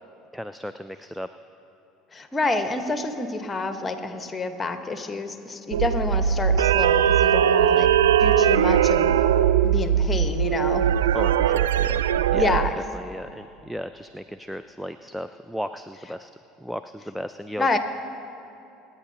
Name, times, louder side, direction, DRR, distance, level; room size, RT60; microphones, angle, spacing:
voice 1, 0.3-1.3 11.1-12.0 12.3-12.6 12.9-16.3 16.6-17.8, equal, ahead, 10 dB, 0.4 m, -35 dB
voice 2, 2.1-7.9 8.2-9.1 9.6-10.9 12.3-13.0 17.6-17.8, left 3 dB, 20° left, 7 dB, 1.2 m, -28 dB
sound 1, 5.7-12.7, right 9 dB, 80° right, 0.3 m, -20 dB
26.5 x 9.4 x 2.9 m, 2.7 s
hypercardioid pair, 70°, 0 cm